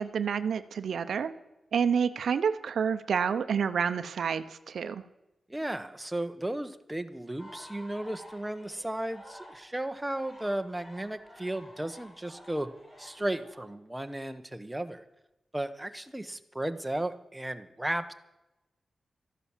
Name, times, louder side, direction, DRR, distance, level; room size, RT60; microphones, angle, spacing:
voice 1, 0.0-1.3 1.7-5.0, right 7 dB, 85° right, 12 dB, 0.7 m, -29 dB
voice 2, 5.5-12.7 13.0-15.0 15.5-18.1, right 1 dB, 10° right, 8 dB, 1.2 m, -34 dB
sound 1, 7.4-13.6, equal, 30° left, 6.4 m, -51 dB
13.5 x 11.0 x 7.4 m, 0.96 s
cardioid pair, 60°, 0 cm